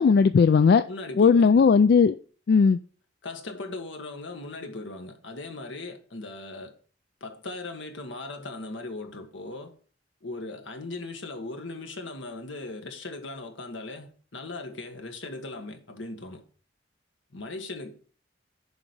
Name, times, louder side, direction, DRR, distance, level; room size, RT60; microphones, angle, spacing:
voice 1, 0.0-0.8 1.2-2.2 2.5-2.8, left 5 dB, 55° left, 0.3 m, -17 dB
voice 2, 0.9-1.7 3.2-6.7 7.2-9.7 10.2-16.4 17.3-17.9, left 2 dB, 80° left, 1.6 m, -38 dB
7.1 x 5.1 x 6.8 m
head